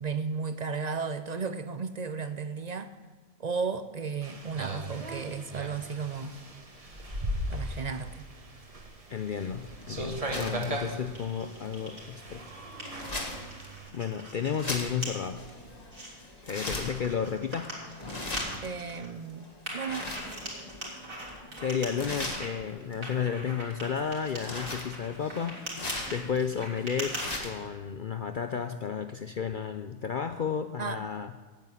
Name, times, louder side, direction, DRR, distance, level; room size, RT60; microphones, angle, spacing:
voice 1, 0.0-3.0 3.4-6.3 7.5-8.3 18.6-20.1 30.8-31.0, right 5 dB, 55° right, 11 dB, 0.4 m, -34 dB
sound 1, 4.2-13.9, right 1 dB, 25° right, 1.4 m, -38 dB
voice 2, 9.1-12.5 13.9-15.4 16.4-17.8 21.6-25.6 26.1-31.3, left 7 dB, 60° left, 9 dB, 0.5 m, -32 dB
sound 2, 9.6-27.7, left 1 dB, 30° left, 1.7 m, -40 dB
sound 3, 11.1-12.1 12.5-14.7 15.0-15.1 15.6-16.1 16.9-19.1 19.6-22.5 23.0-27.2, right 1 dB, 70° right, 3.9 m, -41 dB
9.1 x 8.2 x 9.5 m, 1.4 s
omnidirectional pair, 1.4 m